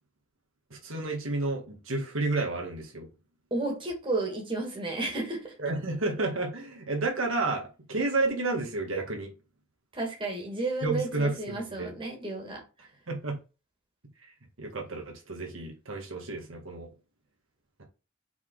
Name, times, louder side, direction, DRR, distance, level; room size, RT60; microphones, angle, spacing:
voice 1, 0.7-3.1 5.6-9.3 10.8-11.9 13.1-13.4 14.6-16.9, right 2 dB, 75° right, 2.0 m, -31 dB
voice 2, 3.5-5.5 9.9-12.6, right 2 dB, 25° right, 2.4 m, -32 dB
5.9 x 4.2 x 4.0 m
head